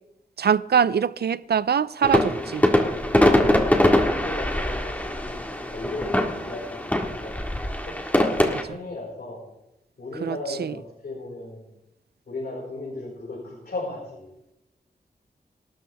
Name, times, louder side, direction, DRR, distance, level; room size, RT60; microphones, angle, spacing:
voice 1, 0.4-2.6 10.2-10.7, right 7 dB, 75° right, 0.5 m, -23 dB
sound 1, 2.0-8.6, left 1 dB, 10° left, 1.9 m, -22 dB
voice 2, 3.1-7.3 7.8-9.4 10.0-11.7 12.3-14.3, left 2 dB, 70° left, 5.1 m, -36 dB
26.5 x 13.0 x 3.5 m
wide cardioid pair, 110°, 17 cm